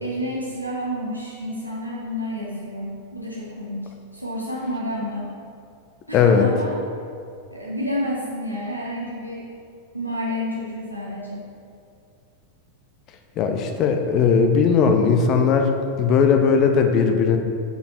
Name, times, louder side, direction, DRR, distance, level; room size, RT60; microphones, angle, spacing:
voice 1, 0.0-5.3 6.1-6.7 7.5-9.5 9.9-11.4, equal, 90° right, -6 dB, 0.8 m, -30 dB
voice 2, 6.1-6.5 13.4-15.7 16.0-17.4, left 6 dB, 35° left, 5 dB, 0.6 m, -18 dB
5.2 x 4.2 x 4.4 m, 2.3 s
figure-of-eight pair, 90°, 0 cm